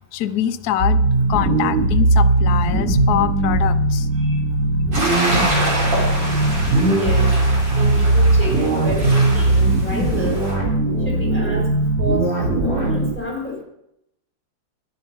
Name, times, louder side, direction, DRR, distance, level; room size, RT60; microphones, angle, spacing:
voice 1, 0.1-1.0 1.3-4.1, left 11 dB, 65° left, 9 dB, 1.1 m, -24 dB
sound 1, 0.8-13.1, right 2 dB, 30° right, 3.7 m, -18 dB
sound 2, 4.9-10.5, right 1 dB, 80° right, 7.8 m, -26 dB
voice 2, 6.9-7.3 7.7-10.5 11.0-12.3 12.6-13.6, equal, 5° left, -2 dB, 4.6 m, -29 dB
13.0 x 10.5 x 5.5 m, 0.78 s
omnidirectional pair, 2.0 m